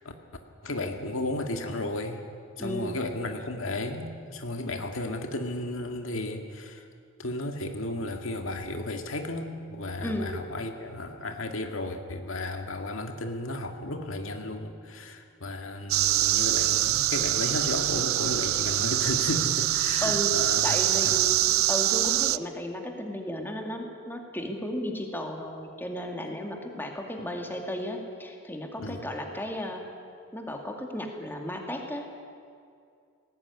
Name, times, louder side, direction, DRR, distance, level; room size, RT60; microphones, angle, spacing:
voice 1, 0.6-2.2 2.6-6.9 7.2-21.2 28.8-29.0, left 2 dB, 70° left, 5 dB, 1.9 m, -34 dB
voice 2, 2.6-3.0 10.0-10.3 20.0-20.3 20.6-29.8 30.3-32.2, left 1 dB, 10° left, 2 dB, 2.3 m, -34 dB
sound 1, 15.9-22.4, right 15 dB, 85° right, 0.5 m, -25 dB
19.5 x 17.5 x 9.6 m, 2.4 s
head